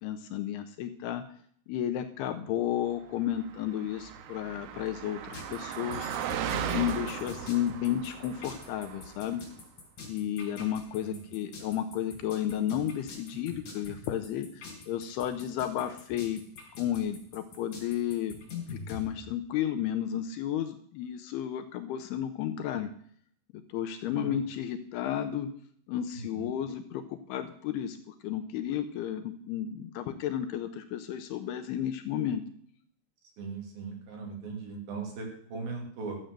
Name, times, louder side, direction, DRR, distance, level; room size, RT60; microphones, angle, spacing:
voice 1, 0.0-1.2 1.7-6.1 6.5-9.4 10.1-16.4 16.8-18.3 18.7-22.9 23.7-25.5 25.9-32.4, left 10 dB, 80° left, 8 dB, 2.5 m, -32 dB
Car passing by, 3.4-9.3, right 9 dB, 75° right, 2.9 m, -37 dB
sound 1, 5.3-19.0, left 4 dB, 45° left, 4.6 m, -44 dB
voice 2, 24.0-24.5 26.1-26.5 33.4-36.2, right 4 dB, 60° right, 1 dB, 4.1 m, -39 dB
13.0 x 7.6 x 6.5 m, 0.63 s
omnidirectional pair, 5.0 m